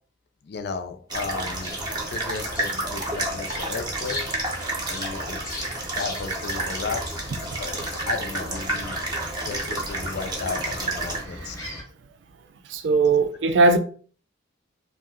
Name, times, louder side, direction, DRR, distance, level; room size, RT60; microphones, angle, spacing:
voice 1, 0.4-1.8 2.0-4.4 4.9-5.4 5.9-7.3 7.6-9.0 9.4-11.6, left 4 dB, 55° left, 0.4 m, -34 dB
sound 1, 1.1-11.8, left 1 dB, 15° left, 0.6 m, -38 dB
sound 2, 1.1-11.2, right 2 dB, 20° right, 0.6 m, -30 dB
voice 2, 7.5-7.9 11.3-11.8 12.6-13.8, right 3 dB, 60° right, 0.4 m, -21 dB
2.6 x 2.1 x 3.5 m
head